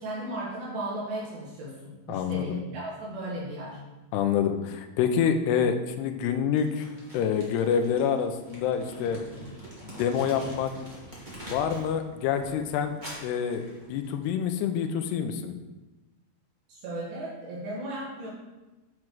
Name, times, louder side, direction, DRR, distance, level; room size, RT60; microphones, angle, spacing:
voice 1, 0.0-3.8 16.7-18.3, right 1 dB, 70° right, -7 dB, 3.7 m, -36 dB
voice 2, 2.1-2.6 4.1-6.9 7.1-9.2 9.8-10.7 11.5-12.9 13.2-15.5, left 7 dB, 80° left, 7 dB, 2.7 m, -27 dB
Crumpling crinkling, 6.5-11.9 12.3-14.2, equal, 20° right, 1.4 m, -44 dB
9.7 x 6.0 x 4.6 m, 1.1 s
omnidirectional pair, 5.1 m